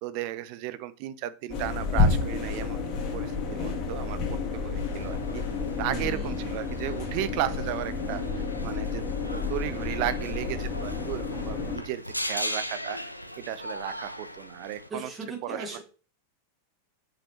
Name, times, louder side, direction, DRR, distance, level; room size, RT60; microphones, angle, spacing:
voice 1, 0.0-5.4 5.8-15.1 15.4-15.8, right 13 dB, 45° right, 14 dB, 0.6 m, -35 dB
sound 1, 1.5-11.8, left 4 dB, 40° left, 1.8 m, -30 dB
sound 2, 4.8-14.9, equal, 90° left, 0.5 m, -39 dB
voice 2, 5.9-6.4 14.9-15.8, right 3 dB, 20° right, 1 dB, 2.2 m, -37 dB
7.0 x 5.3 x 3.1 m, 0.37 s
figure-of-eight pair, 90°, 0 cm